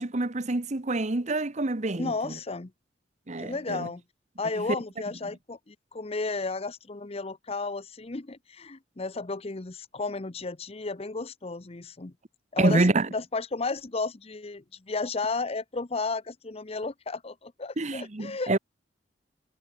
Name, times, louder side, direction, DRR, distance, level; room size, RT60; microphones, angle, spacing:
voice 1, 0.0-2.4 3.3-3.9 12.6-13.1 17.8-18.6, right 2 dB, 40° right, 1.1 m, -27 dB
voice 2, 2.0-2.7 3.4-4.0 4.4-12.1 12.5-12.8 13.1-18.6, left 3 dB, 35° left, 0.8 m, -33 dB
head